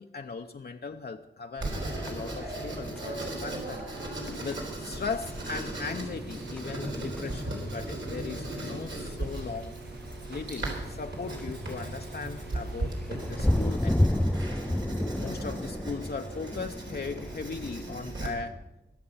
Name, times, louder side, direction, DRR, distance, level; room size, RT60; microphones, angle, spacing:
voice 1, 0.0-9.8 10.3-14.5 15.2-18.6, left 4 dB, 55° left, 4 dB, 0.7 m, -38 dB
sound 1, 1.6-18.0, left 1 dB, 5° left, 0.4 m, -33 dB
Writing, 1.6-18.3, right 1 dB, 85° right, 4.0 m, -37 dB
sound 2, 5.1-13.9, right 2 dB, 60° right, 1.2 m, -48 dB
20.5 x 7.7 x 5.7 m, 0.98 s
cardioid pair, 50°, 19 cm